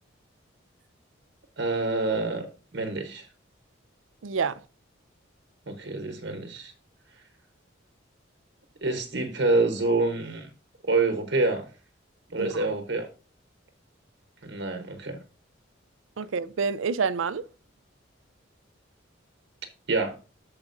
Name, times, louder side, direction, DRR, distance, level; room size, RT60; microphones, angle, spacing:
voice 1, 1.6-2.5 2.7-3.3 5.7-6.7 8.8-10.5 10.9-11.7 12.3-13.1 14.4-15.2 19.9-20.2, right 3 dB, 60° right, 1.0 m, -27 dB
voice 2, 4.2-4.6 12.4-12.7 16.2-17.4, right 5 dB, 85° right, 0.5 m, -28 dB
13.5 x 4.9 x 2.6 m
head